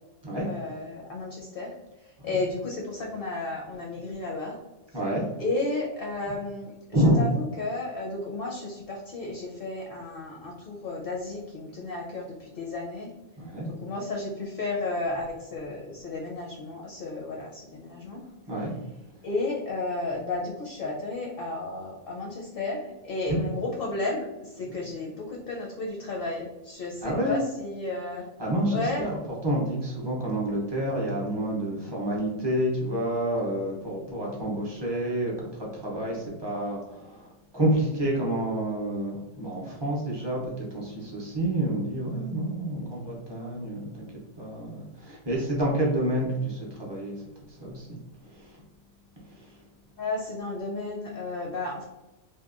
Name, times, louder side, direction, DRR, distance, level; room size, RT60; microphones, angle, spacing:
voice 1, 0.4-1.7 2.0-4.6 5.4-13.1 13.7-18.2 19.2-28.2 28.7-29.0 50.0-51.8, left 2 dB, 60° left, -2 dB, 0.6 m, -33 dB
voice 2, 4.9-5.3 6.9-7.2 13.4-13.7 18.5-18.8 23.3-23.4 27.0-27.4 28.4-48.6 49.2-49.6, right 1 dB, 35° right, -4 dB, 0.4 m, -29 dB
2.8 x 2.1 x 2.3 m, 1.0 s
omnidirectional pair, 1.2 m